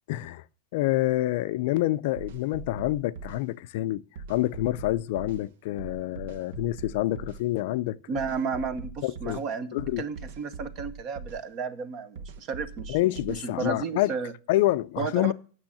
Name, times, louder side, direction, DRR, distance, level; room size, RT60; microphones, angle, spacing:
voice 1, 0.1-0.4 0.7-4.0 4.3-8.0 9.0-9.4 9.7-10.0 12.9-14.1 14.5-15.3, left 16 dB, 55° left, 0.4 m, -27 dB
sound 1, 2.2-3.4 4.2-5.5 5.8-7.4 8.2-9.5 9.8-11.4 12.2-13.5, right 4 dB, 60° right, 1.0 m, -41 dB
voice 2, 8.1-14.3 15.0-15.3, right 5 dB, 30° right, 0.9 m, -33 dB
9.0 x 6.3 x 7.1 m
supercardioid pair, 170°, 0 cm